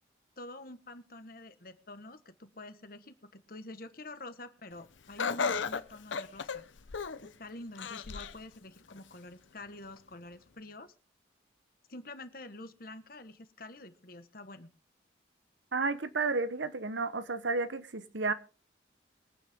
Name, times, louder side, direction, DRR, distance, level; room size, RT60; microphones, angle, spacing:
voice 1, 0.4-6.6 7.2-10.9 11.9-14.7, left 2 dB, 50° left, 1.4 m, -47 dB
Laughter, 5.2-7.3 7.8-8.4 8.9-9.0 10.0-10.1, left 5 dB, 85° left, 0.8 m, -34 dB
voice 2, 15.7-18.3, right 3 dB, 80° right, 1.1 m, -32 dB
22.5 x 8.9 x 3.6 m
head